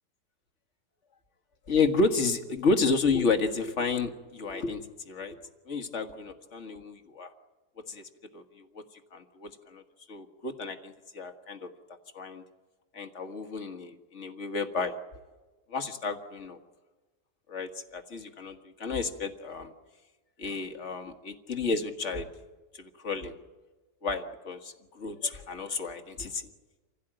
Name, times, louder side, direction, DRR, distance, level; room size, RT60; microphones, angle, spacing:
voice 1, 1.7-5.4 5.7-7.3 7.9-8.0 8.3-8.8 9.1-9.8 10.1-11.7 12.1-12.4 12.9-15.0 15.7-16.6 17.5-19.7 20.4-22.3 22.7-23.3 24.0-26.4, left 4 dB, 45° left, 6 dB, 1.8 m, -31 dB
26.5 x 16.5 x 9.0 m, 1.3 s
omnidirectional pair, 1.8 m